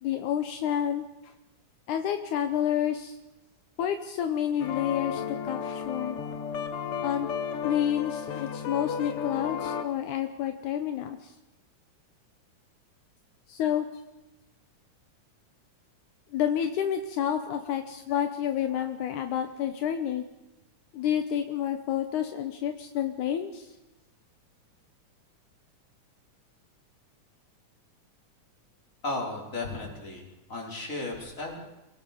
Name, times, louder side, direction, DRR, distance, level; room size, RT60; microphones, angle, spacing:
voice 1, 0.0-1.3 1.9-3.2 3.8-6.2 7.0-7.3 7.6-11.3 13.5-13.9 16.3-20.2 20.9-23.7, left 9 dB, 75° left, 7 dB, 2.4 m, -29 dB
sound 1, 4.6-9.8, left 7 dB, 55° left, 1.8 m, -33 dB
voice 2, 29.0-30.2 30.5-31.6, left 2 dB, 25° left, -1 dB, 4.8 m, -34 dB
28.5 x 18.0 x 5.3 m, 1.0 s
omnidirectional pair, 3.6 m